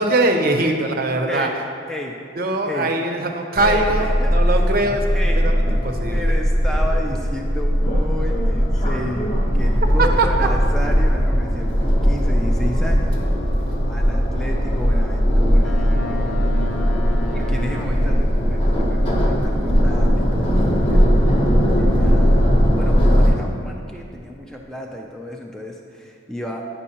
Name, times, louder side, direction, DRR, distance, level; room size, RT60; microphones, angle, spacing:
voice 1, 0.0-1.5 2.4-5.0 5.4-5.5 5.8-6.3, right 2 dB, 50° right, 4 dB, 0.6 m, -21 dB
voice 2, 1.3-1.6 1.9-2.2 2.7-3.0 3.6-4.6 5.1-5.5 5.9-13.2 13.9-16.5 17.3-21.2 21.7-22.4 22.7-26.6, equal, 5° left, 0 dB, 0.3 m, -32 dB
sound 1, 3.6-23.3, equal, 30° left, 0.8 m, -18 dB
Boat Water vehicle, 15.6-18.3, left 2 dB, 85° left, 0.6 m, -32 dB
9.8 x 5.3 x 2.8 m, 2.3 s
head